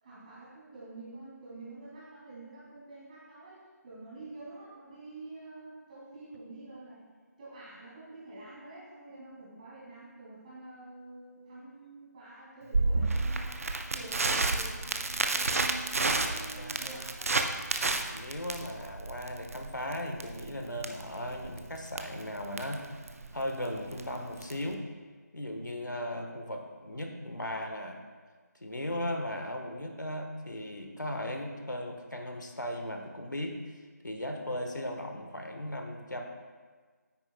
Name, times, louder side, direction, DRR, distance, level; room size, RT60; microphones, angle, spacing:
voice 1, 0.0-7.0 7.4-13.6 13.9-17.3, right 2 dB, 25° right, -8 dB, 2.4 m, -47 dB
Crackle, 12.7-24.7, right 3 dB, 50° right, 0.7 m, -31 dB
voice 2, 16.2-17.0 18.1-22.9 23.3-24.9 25.3-28.0 28.6-33.6 34.0-36.2, left 1 dB, 90° left, 3 dB, 1.3 m, -37 dB
9.7 x 8.9 x 2.3 m, 1.5 s
figure-of-eight pair, 160°, 10 cm